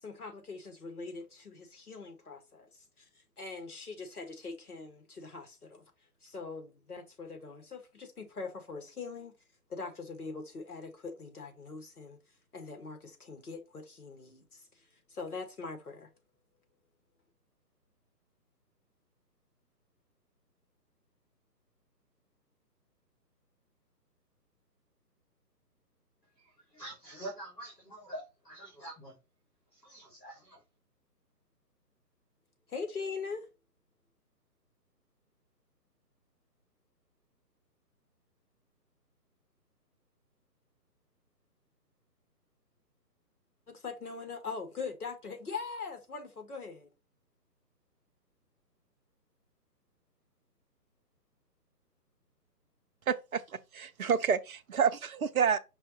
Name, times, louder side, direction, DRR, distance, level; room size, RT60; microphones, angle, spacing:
voice 1, 0.0-5.8 6.2-9.4 9.7-12.2 12.5-14.8 15.1-16.1 32.7-33.5 43.7-46.9, left 4 dB, 60° left, 1.6 m, -42 dB
voice 2, 26.7-29.1 29.7-30.6, right 1 dB, 85° left, 2.7 m, -45 dB
voice 3, 53.1-53.4 53.7-55.6, right 7 dB, 60° right, 0.6 m, -28 dB
5.6 x 2.3 x 4.1 m
figure-of-eight pair, 145°, 50 cm